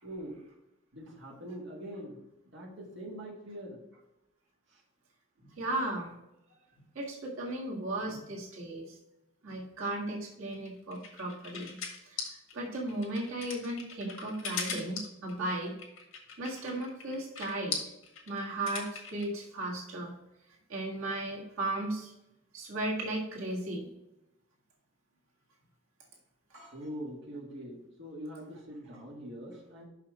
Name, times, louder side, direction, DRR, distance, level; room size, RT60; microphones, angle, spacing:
voice 1, 0.0-0.4 0.9-2.2 2.5-4.0 4.7-4.8 26.5-29.8, equal, 60° right, -3 dB, 1.9 m, -43 dB
voice 2, 5.6-6.2 7.0-8.9 9.4-11.7 12.1-12.3 12.5-15.8 16.4-17.8 18.3-20.1 20.7-22.1 22.5-23.9, right 1 dB, 90° right, -3 dB, 1.8 m, -35 dB
sound 1, 10.5-19.3, left 5 dB, 75° left, 1.7 m, -40 dB
6.0 x 5.8 x 4.8 m, 0.90 s
head